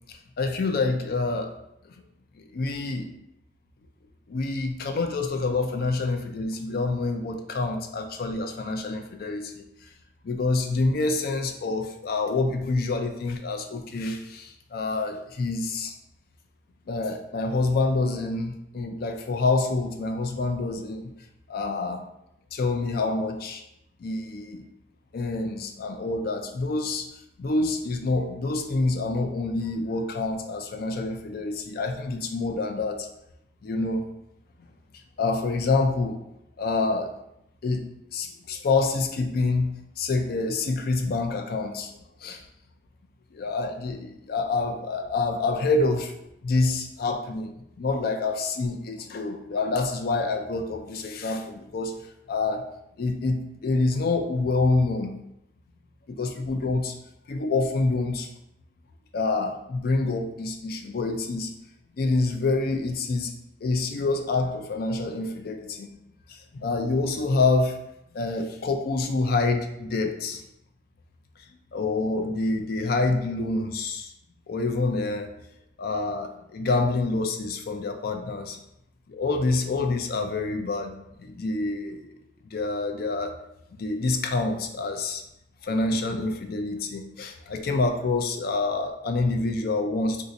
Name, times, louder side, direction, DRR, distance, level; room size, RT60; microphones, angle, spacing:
voice 1, 0.4-1.5 2.5-3.1 4.3-9.6 10.2-15.9 16.9-21.1 21.5-22.0 22.5-23.6 24.0-24.6 25.1-27.1 27.4-33.1 33.6-34.0 35.2-36.2 36.6-37.1 37.6-37.9 38.1-41.9 42.2-42.4 43.3-46.1 46.4-47.5 47.8-51.9 52.3-52.6 53.0-55.1 56.1-57.0 57.3-58.3 59.1-61.5 62.0-63.3 63.6-65.9 66.3-67.8 68.1-70.4 71.7-74.1 74.5-75.3 75.8-78.6 79.1-80.9 81.2-82.0 82.5-83.3 83.8-85.2 85.6-90.2, left 3 dB, 55° left, 5 dB, 0.4 m, -27 dB
2.6 x 2.5 x 3.9 m, 0.82 s
head